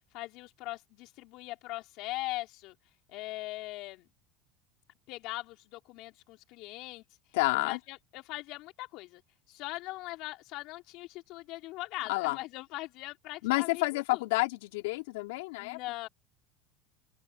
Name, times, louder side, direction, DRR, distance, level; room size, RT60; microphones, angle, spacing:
voice 1, 0.1-2.7 3.1-4.0 5.1-7.0 7.6-9.2 9.5-14.2 15.6-16.1, left 19 dB, 60° left, 3.1 m, -40 dB
voice 2, 7.3-7.8 12.1-12.4 13.4-15.8, left 23 dB, 80° left, 3.6 m, -29 dB
open air
supercardioid pair, 105°, 0 cm